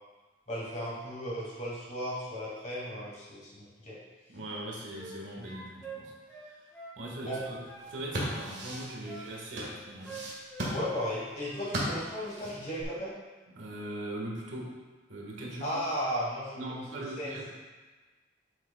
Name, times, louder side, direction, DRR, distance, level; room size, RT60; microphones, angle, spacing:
voice 1, 0.5-4.0 5.4-5.5 7.2-7.4 9.0-9.1 10.7-13.1 15.6-17.4, equal, 40° left, -6 dB, 2.2 m, -35 dB
voice 2, 4.3-6.1 6.4-6.6 7.0-7.6 7.9-10.2 13.5-14.8 15.1-15.9 16.6-17.5, right 1 dB, 80° right, -2 dB, 1.5 m, -40 dB
sound 1, 4.4-5.2 5.4-7.0 7.2-8.4 8.6-9.7 10.0-11.2 11.4-11.7, right 3 dB, 10° left, 1.9 m, -46 dB
sound 2, 7.8-12.8, right 1 dB, 60° right, 1.6 m, -37 dB
8.7 x 6.5 x 2.3 m, 1.3 s
head